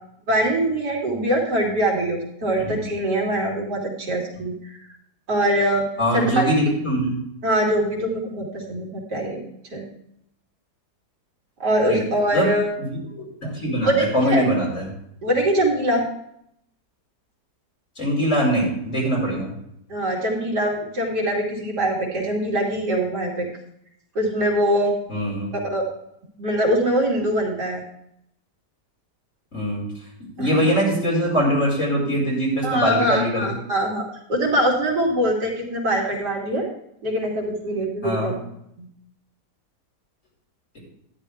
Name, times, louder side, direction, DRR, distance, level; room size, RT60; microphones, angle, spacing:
voice 1, 0.3-4.5 5.3-5.9 6.1-6.4 7.4-9.4 9.7-9.8 11.6-12.7 13.8-14.4 15.2-16.0 19.9-23.5 24.1-24.9 25.7-25.8 26.4-27.8 30.4-30.6 32.6-36.7 37.0-38.3 38.8-38.9, right 1 dB, 80° right, -2 dB, 2.9 m, -23 dB
voice 2, 6.0-7.2 11.9-12.0 12.3-12.5 12.8-13.0 13.4-14.9 18.0-19.5 25.1-25.5 29.5-29.9 30.4-33.5 38.0-38.3, equal, 50° left, -4 dB, 5.5 m, -22 dB
12.5 x 10.0 x 3.5 m, 0.75 s
omnidirectional pair, 1.8 m